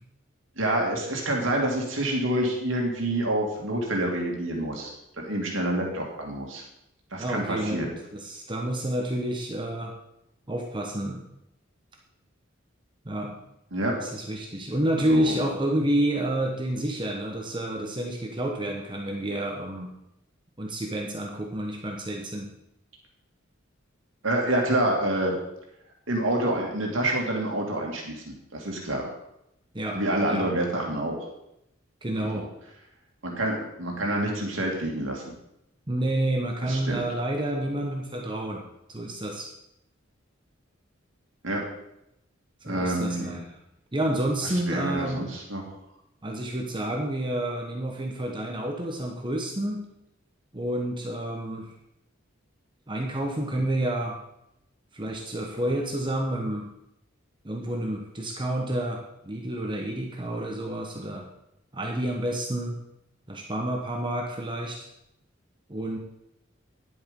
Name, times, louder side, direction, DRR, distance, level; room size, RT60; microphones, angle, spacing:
voice 1, 0.6-6.6 7.1-7.9 13.7-13.9 15.1-15.4 24.2-25.3 26.1-29.1 29.9-31.2 32.2-32.4 33.2-35.2 36.6-37.0 41.4-41.6 42.6-43.4 44.4-45.6, right 1 dB, 70° right, 0 dB, 2.4 m, -27 dB
voice 2, 7.2-9.9 10.5-11.2 13.0-13.3 14.0-19.9 20.6-22.5 29.7-30.0 30.3-30.5 32.0-32.5 35.9-39.5 42.6-43.6 43.9-45.2 46.2-49.8 50.5-51.7 52.9-54.2 54.9-56.7 57.4-61.3 61.7-62.8 63.3-64.9 65.7-66.0, right 1 dB, 25° right, 1 dB, 1.1 m, -29 dB
10.5 x 7.8 x 5.3 m, 0.83 s
head